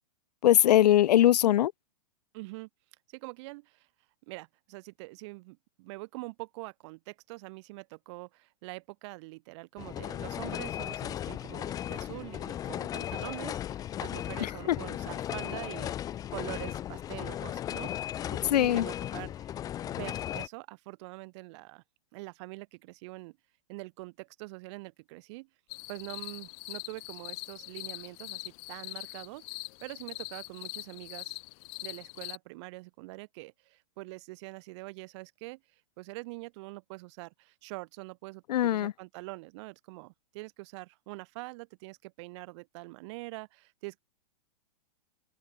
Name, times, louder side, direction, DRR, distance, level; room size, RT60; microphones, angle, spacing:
voice 1, 0.4-1.7 14.4-14.8 18.5-18.9 38.5-38.9, left 12 dB, 80° left, 0.5 m, -22 dB
voice 2, 2.3-2.7 3.1-3.9 4.3-19.5 19.8-21.8 22.1-23.4 23.7-25.5 25.9-29.4 29.8-31.4 31.8-44.0, right 24 dB, 45° right, 3.0 m, -44 dB
sound 1, 9.8-20.5, left 11 dB, 20° left, 0.6 m, -36 dB
sound 2, 25.7-32.4, left 32 dB, 40° left, 3.0 m, -42 dB
open air
hypercardioid pair, 140°, 20 cm